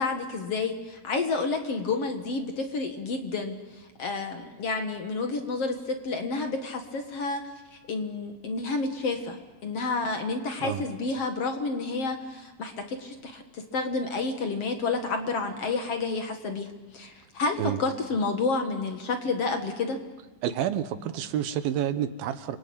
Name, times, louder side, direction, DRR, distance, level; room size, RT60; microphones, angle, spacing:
voice 1, 0.0-7.4 7.7-20.0, left 3 dB, 50° left, 5 dB, 2.3 m, -30 dB
voice 2, 20.4-22.6, right 10 dB, 85° right, 11 dB, 3.0 m, -29 dB
29.5 x 22.5 x 8.8 m, 1.2 s
omnidirectional pair, 4.1 m